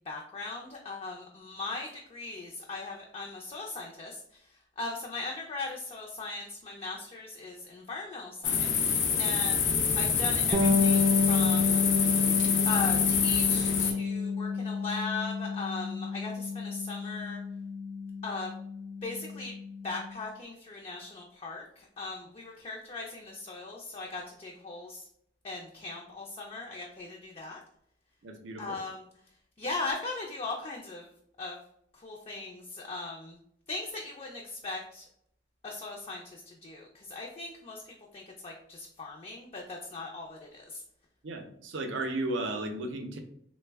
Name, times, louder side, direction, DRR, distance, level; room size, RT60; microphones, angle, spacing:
voice 1, 0.1-8.9 9.2-12.3 12.7-17.4 18.2-18.5 19.0-19.5 19.8-25.0 25.4-27.6 28.6-29.1 29.6-31.1 31.4-31.6 31.9-33.4 33.7-35.1 35.6-40.8, left 3 dB, 35° left, -1 dB, 0.4 m, -39 dB
sound 1, 8.4-13.9, left 6 dB, 85° left, 0.5 m, -26 dB
Bass guitar, 10.5-20.1, left 4 dB, 30° right, 0.4 m, -30 dB
voice 2, 28.2-28.8 41.2-43.2, right 2 dB, 85° right, 5 dB, 0.5 m, -34 dB
3.2 x 2.1 x 3.3 m, 0.70 s
head